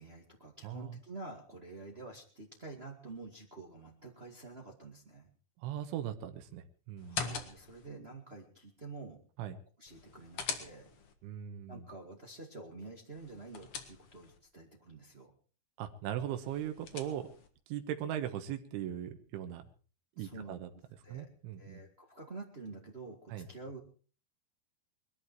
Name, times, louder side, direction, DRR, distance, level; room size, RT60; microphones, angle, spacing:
voice 1, 0.0-5.3 7.1-9.2 9.8-10.9 11.7-15.3 20.1-21.3 21.6-23.8, right 3 dB, 50° right, 1 dB, 0.7 m, -48 dB
voice 2, 0.6-1.0 5.6-7.3 9.4-9.6 11.2-11.9 15.8-17.3 17.7-19.6 20.2-20.7 21.1-21.8 23.3-23.5, right 10 dB, 90° right, 7 dB, 3.7 m, -39 dB
sound 1, 7.0-7.9 9.9-11.1 13.1-14.4 16.4-17.5, left 6 dB, 60° left, 1.5 m, -42 dB
21.5 x 13.0 x 4.6 m, 0.39 s
omnidirectional pair, 5.3 m